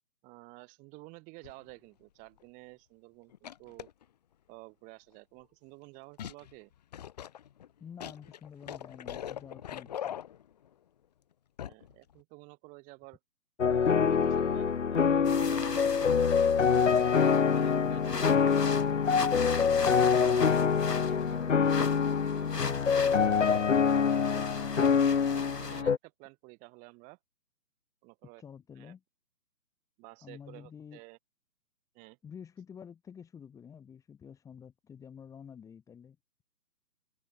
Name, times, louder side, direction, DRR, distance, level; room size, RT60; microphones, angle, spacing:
voice 1, 0.2-3.9 4.5-6.7 11.6-13.2 13.7-15.2 15.5-16.6 17.2-18.8 19.6-20.4 20.8-21.6 22.3-22.8 24.2-24.6 25.3-27.2 28.0-28.4 28.7-28.9 30.0-31.2 31.9-32.2, right 27 dB, 15° right, 6.6 m, -52 dB
Monster belches + watery belches, 1.4-1.7 2.4-2.5 3.3-4.0 6.2-6.5 6.9-10.7 11.6-11.9 12.2-12.3, left 10 dB, 25° left, 1.8 m, -41 dB
voice 2, 7.8-10.2 28.4-29.0 30.2-31.0 32.2-36.4, left 7 dB, 5° left, 4.6 m, -49 dB
sound 1, 13.6-26.0, left 6 dB, 50° left, 0.6 m, -25 dB
sound 2, 15.2-25.8, left 4 dB, 75° left, 1.8 m, -40 dB
open air
figure-of-eight pair, 145°, 48 cm